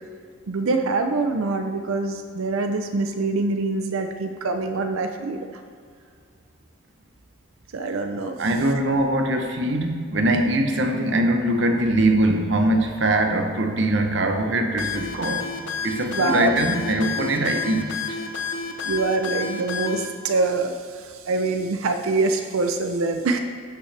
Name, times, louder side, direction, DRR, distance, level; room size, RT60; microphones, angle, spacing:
voice 1, 0.5-5.5 7.7-8.4 16.1-16.5 18.8-23.4, right 3 dB, 90° right, 6 dB, 0.5 m, -24 dB
voice 2, 8.4-15.5 15.8-18.2, right 1 dB, 60° right, 5 dB, 0.8 m, -22 dB
sound 1, 14.8-20.1, left 5 dB, 65° left, 0.8 m, -30 dB
12.5 x 5.6 x 3.3 m, 2.2 s
head